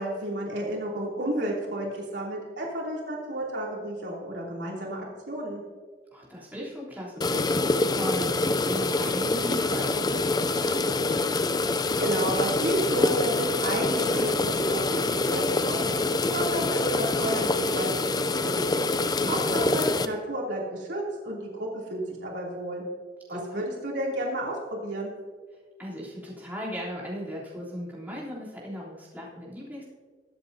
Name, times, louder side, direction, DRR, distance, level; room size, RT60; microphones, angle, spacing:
voice 1, 0.0-5.6 12.0-15.9 16.2-18.6 19.3-22.8 23.3-25.1, right 1 dB, 75° right, -4 dB, 3.1 m, -32 dB
voice 2, 6.1-11.0 19.2-19.6 23.3-23.6 25.8-29.8, equal, 10° right, -8 dB, 3.4 m, -37 dB
sound 1, 7.2-20.1, left 2 dB, 25° left, 0.5 m, -25 dB
22.0 x 8.3 x 2.8 m, 1.5 s
head